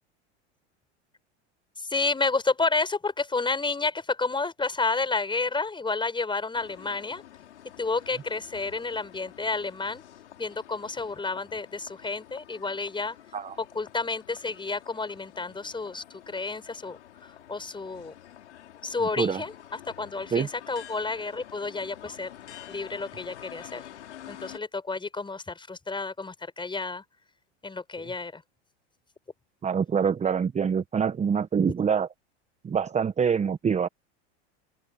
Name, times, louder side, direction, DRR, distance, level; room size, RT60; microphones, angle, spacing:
voice 1, 1.8-7.2 7.8-10.0 10.4-13.2 13.6-18.1 18.8-22.3 22.7-23.8 24.3-27.0 27.6-28.4, left 3 dB, 15° left, 5.6 m, -30 dB
sound 1, 6.5-24.6, left 11 dB, 90° left, 5.2 m, -48 dB
voice 2, 29.6-32.1 32.6-33.9, right 7 dB, 20° right, 1.1 m, -25 dB
hypercardioid pair, 95°, 33 cm